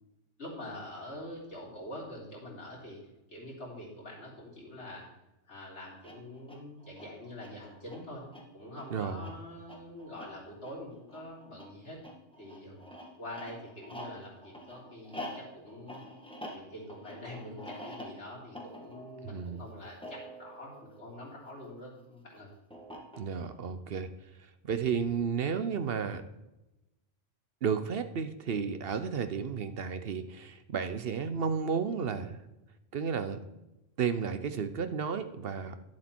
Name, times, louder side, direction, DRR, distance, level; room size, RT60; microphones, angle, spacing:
voice 1, 0.4-3.0 3.3-5.1 5.5-8.2 8.5-12.0 12.4-12.8 13.2-16.0 16.5-22.5, left 1 dB, 65° left, -5 dB, 3.5 m, -45 dB
sound 1, 5.9-21.7 22.7-23.6, equal, 5° left, 1.5 m, -47 dB
voice 2, 8.9-9.2 19.2-19.6 23.2-24.1 24.6-26.2 27.6-32.4 32.9-33.4 34.0-35.8, right 6 dB, 55° right, 10 dB, 0.8 m, -32 dB
10.5 x 7.4 x 4.4 m, 0.96 s
omnidirectional pair, 1.2 m